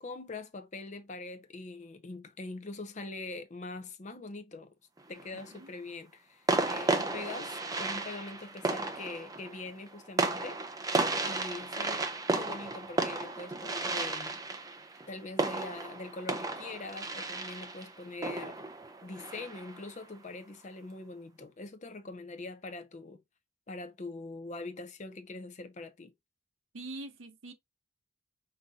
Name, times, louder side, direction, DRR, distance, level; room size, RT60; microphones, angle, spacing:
voice 1, 0.0-4.7 5.1-14.4 15.1-18.7 19.0-23.2 23.7-26.1, left 3 dB, 35° left, 0.6 m, -43 dB
sound 1, 5.0-5.6 6.5-19.9, right 3 dB, 20° right, 0.5 m, -33 dB
voice 2, 26.7-27.5, right 2 dB, 80° right, 0.9 m, -43 dB
5.3 x 2.6 x 2.3 m
head